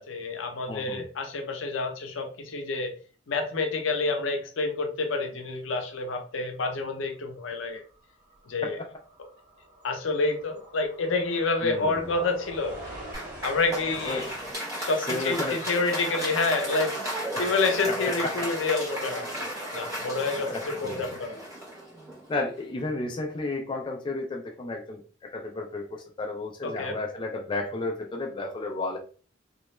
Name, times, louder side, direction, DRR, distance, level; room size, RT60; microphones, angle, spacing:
voice 1, 0.0-2.9 3.3-7.8 8.5-8.8 9.8-12.8 13.4-14.3 14.8-21.4 26.6-27.0, left 3 dB, 85° left, 4 dB, 0.5 m, -28 dB
voice 2, 0.7-1.1 8.7-8.9 11.6-12.1 14.1-14.3 15.1-15.6 17.3-17.5 17.9-18.4 20.4-21.2 22.3-29.0, left 2 dB, 25° left, 1 dB, 0.3 m, -33 dB
sound 1, 7.8-8.0 8.2-14.5, right 1 dB, 45° right, 1.1 m, -43 dB
Applause, 13.1-22.5, equal, 15° right, 0.9 m, -34 dB
2.3 x 2.0 x 3.0 m, 0.39 s
head